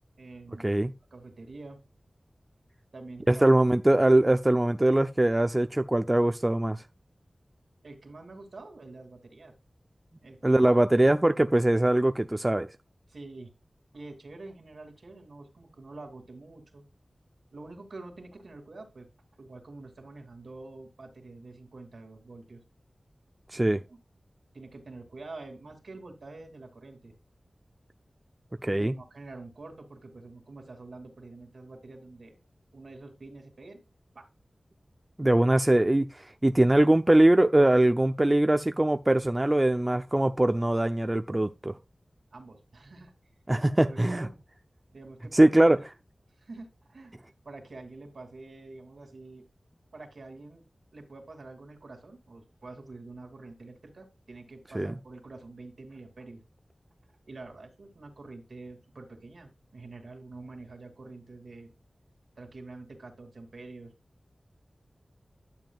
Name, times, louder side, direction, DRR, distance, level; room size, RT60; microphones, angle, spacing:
voice 1, 0.2-0.7 1.1-1.8 2.9-3.5 7.8-9.5 10.2-10.6 13.1-13.5 13.9-16.8 17.5-19.1 19.4-22.6 23.6-24.0 24.5-27.1 28.7-32.4 32.7-33.8 34.1-34.3 42.3-43.1 43.8-44.4 44.9-45.9 46.4-49.5 49.9-50.6 50.9-56.4 57.3-61.7 62.4-63.9, right 3 dB, 80° right, 2.8 m, -46 dB
voice 2, 3.3-6.8 10.4-12.7 23.5-23.8 28.6-28.9 35.2-41.7 43.5-44.3 45.3-45.8 54.7-54.9, right 1 dB, 25° right, 0.5 m, -22 dB
12.0 x 7.4 x 2.4 m
wide cardioid pair, 60°, 0 cm